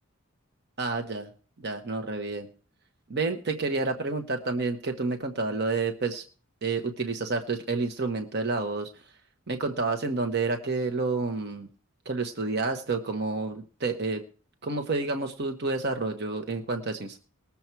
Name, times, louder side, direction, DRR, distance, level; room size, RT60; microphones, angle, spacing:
voice 1, 0.8-1.3 1.6-2.5 3.1-6.2 6.6-8.9 9.5-11.7 12.0-14.2 14.6-17.2, right 3 dB, 50° right, 5 dB, 1.1 m, -29 dB
20.5 x 7.1 x 4.6 m, 0.40 s
head